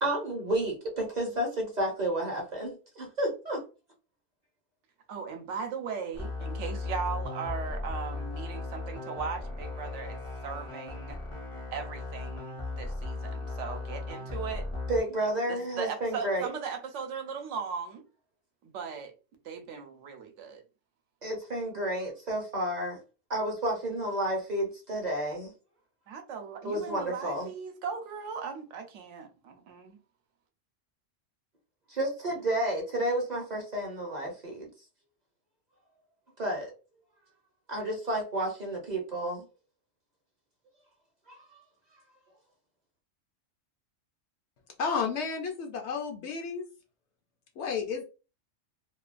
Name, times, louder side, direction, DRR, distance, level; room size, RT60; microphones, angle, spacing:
voice 1, 0.0-3.6 14.9-16.5 21.2-23.0 23.3-25.5 26.6-27.5 31.9-34.7 36.4-36.7 37.7-39.4 41.3-41.4, right 1 dB, 45° right, 0.6 m, -31 dB
voice 2, 5.1-11.2 11.7-14.6 15.5-18.0 18.6-19.1 19.4-20.6 26.1-30.0, right 6 dB, 70° right, 0.9 m, -38 dB
sound 1, 6.1-15.0, left 3 dB, 35° left, 0.6 m, -37 dB
voice 3, 44.8-46.6 47.6-48.0, left 5 dB, 65° left, 0.8 m, -32 dB
2.8 x 2.2 x 2.4 m
omnidirectional pair, 1.3 m